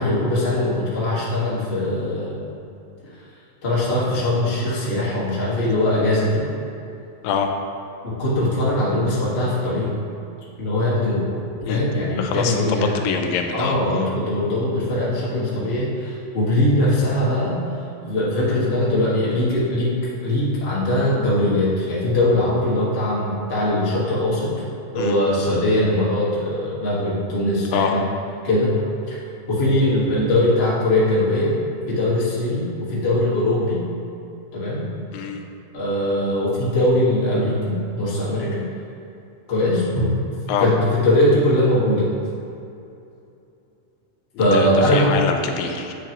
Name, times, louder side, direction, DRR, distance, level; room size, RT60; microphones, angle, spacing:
voice 1, 0.0-2.5 3.6-6.4 8.0-9.9 10.6-11.4 11.7-12.9 13.5-17.6 18.0-19.9 20.2-24.5 24.9-28.0 28.4-28.8 29.1-29.2 29.5-31.6 31.9-33.8 34.5-34.9 35.7-38.6 39.5-40.2 40.6-42.1 44.4-45.1, left 1 dB, 50° left, -8 dB, 0.7 m, -21 dB
voice 2, 12.2-13.8 25.0-25.1 27.7-27.9 35.1-35.4 40.5-40.7 44.5-45.9, left 6 dB, 85° left, 4 dB, 2.3 m, -24 dB
8.0 x 6.0 x 3.0 m, 2.7 s
omnidirectional pair, 3.9 m